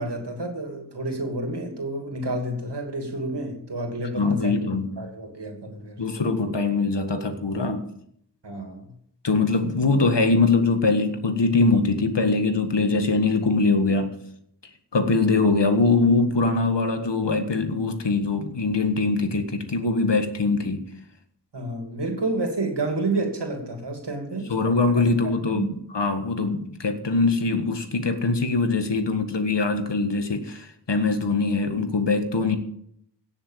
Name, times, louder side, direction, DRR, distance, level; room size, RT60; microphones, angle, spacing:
voice 1, 0.0-4.7 5.0-6.0 8.4-8.9 21.5-24.5 24.9-25.7, right 2 dB, 75° right, 2.8 m, -30 dB
voice 2, 4.2-4.9 6.0-7.9 9.2-14.2 14.9-20.8 24.5-32.6, left 3 dB, 80° left, 1.8 m, -22 dB
17.0 x 7.1 x 7.5 m
wide cardioid pair, 55°, 42 cm